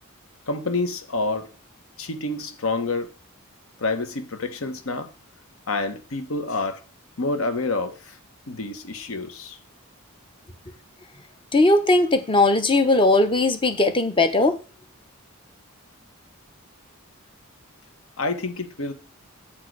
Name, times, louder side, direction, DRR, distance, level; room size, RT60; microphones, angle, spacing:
voice 1, 0.5-1.5 2.0-3.1 3.8-5.1 5.7-6.8 7.2-8.2 8.5-9.6 18.2-18.9, left 3 dB, 70° left, 1.0 m, -28 dB
voice 2, 11.5-14.6, left 2 dB, 25° left, 0.7 m, -18 dB
7.5 x 4.5 x 4.6 m
head